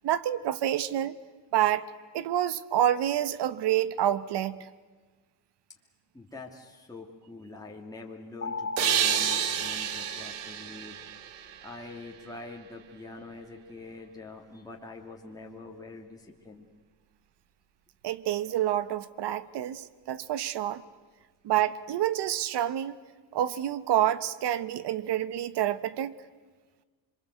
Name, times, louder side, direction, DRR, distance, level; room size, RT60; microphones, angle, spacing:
voice 1, 0.0-1.2 1.5-1.9 2.1-4.6 18.0-20.8 21.4-23.0 23.3-26.1, right 11 dB, 55° right, 16 dB, 1.2 m, -28 dB
voice 2, 6.1-11.0 11.6-16.7, left 3 dB, 5° left, -1 dB, 2.5 m, -45 dB
sound 1, 8.4-10.9, left 4 dB, 30° left, 2.7 m, -37 dB
sound 2, 8.8-12.3, right 9 dB, 85° right, 2.0 m, -30 dB
26.5 x 23.5 x 8.1 m, 1.4 s
cardioid pair, 100°, 49 cm